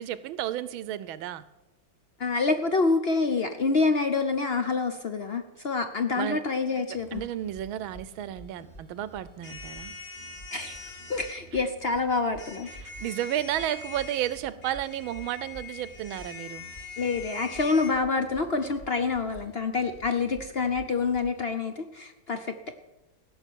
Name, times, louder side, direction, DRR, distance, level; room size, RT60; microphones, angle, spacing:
voice 1, 0.0-1.4 6.1-6.4 7.1-9.9 12.8-16.6, right 12 dB, 90° right, 16 dB, 1.5 m, -32 dB
voice 2, 2.2-7.2 10.5-12.7 17.0-22.5, left 4 dB, 60° left, 8 dB, 0.6 m, -27 dB
sound 1, 6.9-21.4, right 2 dB, 35° left, 3.4 m, -50 dB
sound 2, 9.4-11.4 12.4-17.9, left 4 dB, 80° left, 3.7 m, -43 dB
16.0 x 6.6 x 9.2 m, 0.99 s
omnidirectional pair, 2.2 m